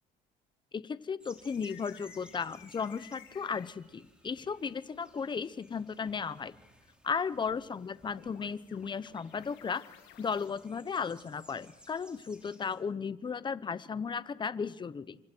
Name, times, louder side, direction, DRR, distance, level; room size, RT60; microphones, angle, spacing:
voice 1, 0.7-6.5 7.0-9.9 10.2-15.2, left 6 dB, 25° left, 15 dB, 0.9 m, -35 dB
sound 1, 1.2-12.8, equal, 5° right, 5.1 m, -61 dB
sound 2, 1.4-3.8 7.5-10.5, left 11 dB, 90° left, 2.3 m, -56 dB
29.0 x 25.5 x 4.6 m, 0.97 s
cardioid pair, 110°, 17 cm